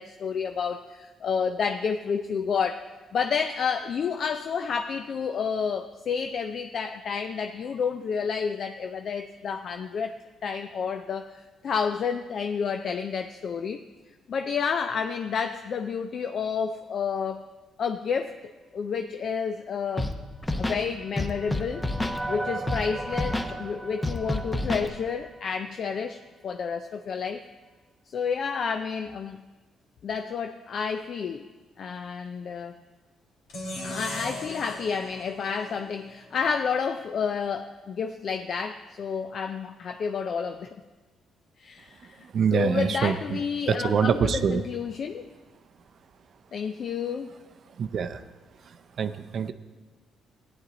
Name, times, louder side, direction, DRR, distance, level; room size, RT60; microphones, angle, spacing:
voice 1, 0.0-2.8 3.1-10.1 10.4-13.8 14.3-17.4 17.8-20.1 20.6-27.4 28.1-29.4 30.0-31.5 31.8-32.7 33.8-40.7 41.6-45.3 46.5-47.3, left 6 dB, 55° left, 8 dB, 0.4 m, -30 dB
Scratching (performance technique), 20.0-20.1 20.4-20.8 21.2-22.2 22.7-22.8 23.1-23.5 24.0-24.9, left 2 dB, 15° left, 0.9 m, -28 dB
sound 1, 20.5-25.8, right 2 dB, 10° right, 0.6 m, -38 dB
sound 2, 33.5-36.7, left 1 dB, 85° left, 2.6 m, -38 dB
voice 2, 42.3-43.2 43.7-44.6 47.8-48.2 49.0-49.5, right 6 dB, 60° right, 10 dB, 0.5 m, -24 dB
14.5 x 9.7 x 4.0 m, 1.3 s
cardioid pair, 90°, 0 cm